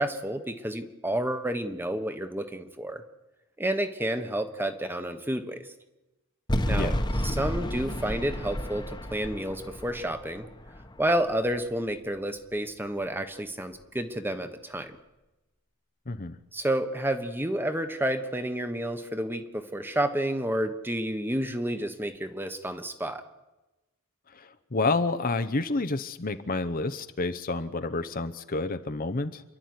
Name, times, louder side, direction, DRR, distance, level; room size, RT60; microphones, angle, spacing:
voice 1, 0.0-3.0 3.6-5.6 6.6-7.0 7.2-10.4 11.0-14.9 16.5-23.2, right 1 dB, 10° right, 8 dB, 1.3 m, -30 dB
sound 1, 6.5-11.7, equal, 20° left, 1.3 m, -31 dB
voice 2, 6.7-7.0 16.1-16.4 24.3-29.4, left 3 dB, 40° left, 11 dB, 0.9 m, -29 dB
28.0 x 12.0 x 9.6 m, 1.1 s
head